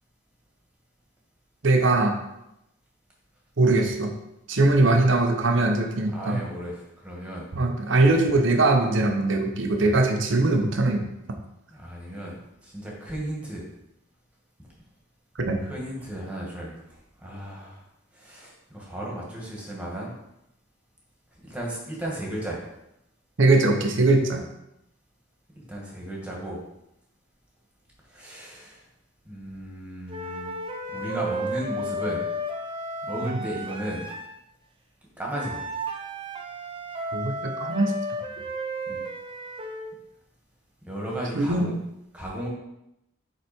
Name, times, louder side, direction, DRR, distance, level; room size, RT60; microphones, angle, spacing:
voice 1, 1.6-2.2 3.6-4.1 4.5-6.4 7.6-11.0 15.4-15.6 23.4-24.4 33.2-33.4 37.1-37.9 41.4-41.8, right 2 dB, 65° right, 3 dB, 0.9 m, -21 dB
voice 2, 6.1-7.5 11.7-12.4 12.6-13.7 15.6-17.8 18.1-20.1 21.4-22.6 25.5-26.6 28.1-28.8 29.3-30.5 30.9-32.2 33.0-34.0 35.2-35.6 38.9-39.0 40.8-41.7 42.1-42.5, right 1 dB, 5° right, -3 dB, 1.8 m, -35 dB
sound 1, 30.1-34.4 35.3-39.9, equal, 25° right, 0.6 m, -33 dB
8.0 x 4.1 x 4.4 m, 0.84 s
head